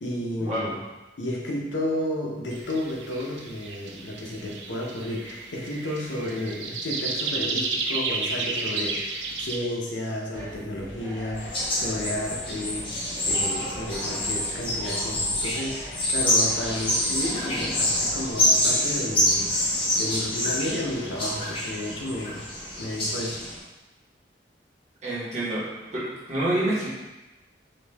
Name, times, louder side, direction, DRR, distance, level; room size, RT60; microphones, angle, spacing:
voice 1, 0.0-0.8 1.2-13.0 13.3-22.5 22.8-23.4, left 1 dB, 85° left, -2 dB, 0.8 m, -32 dB
sound 1, 2.5-9.6, right 3 dB, 80° right, 0.5 m, -32 dB
sound 2, 10.3-18.2, equal, 20° right, 1.1 m, -42 dB
sound 3, 11.4-23.6, left 1 dB, 30° left, 1.0 m, -26 dB
voice 2, 25.0-25.6 25.9-26.9, right 1 dB, 40° right, -9 dB, 1.3 m, -27 dB
4.0 x 2.7 x 3.4 m, 1.1 s
head